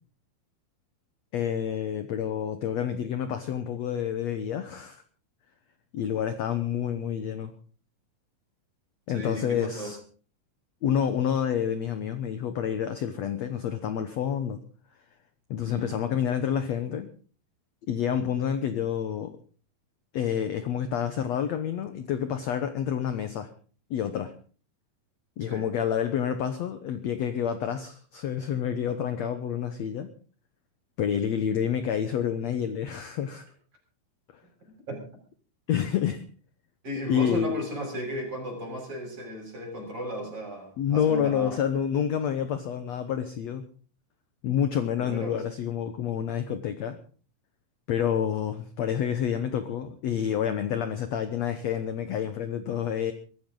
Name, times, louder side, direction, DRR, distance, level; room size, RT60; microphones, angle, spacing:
voice 1, 1.3-5.0 5.9-7.5 9.1-10.0 10.8-14.6 15.5-17.1 17.9-19.4 20.1-23.5 23.9-24.3 25.4-30.1 31.0-33.5 35.7-36.2 37.1-37.7 40.8-43.7 44.4-47.0 47.9-53.1, left 8 dB, 65° left, 9 dB, 1.7 m, -28 dB
voice 2, 9.1-9.9 15.7-15.9 25.4-25.6 34.9-35.0 36.8-41.6 45.0-45.4, equal, 35° right, 1 dB, 7.8 m, -35 dB
23.5 x 14.0 x 3.9 m, 0.41 s
omnidirectional pair, 4.3 m